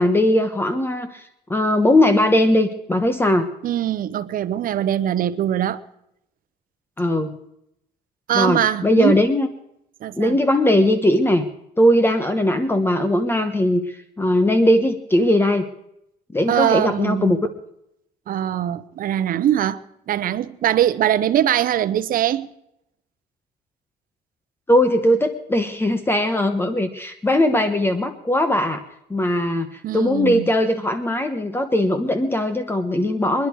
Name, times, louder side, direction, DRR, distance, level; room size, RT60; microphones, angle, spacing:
voice 1, 0.0-3.5 7.0-7.4 8.3-9.5 10.1-11.5 11.8-15.7 16.3-17.4 24.7-28.8 29.1-33.5, left 1 dB, 15° left, 1.0 m, -19 dB
voice 2, 3.6-5.8 8.3-9.2 10.0-10.4 16.5-17.4 18.3-19.8 20.1-22.5 29.8-30.5, right 11 dB, 55° right, 0.9 m, -22 dB
23.5 x 10.5 x 4.7 m
cardioid pair, 110°, 17 cm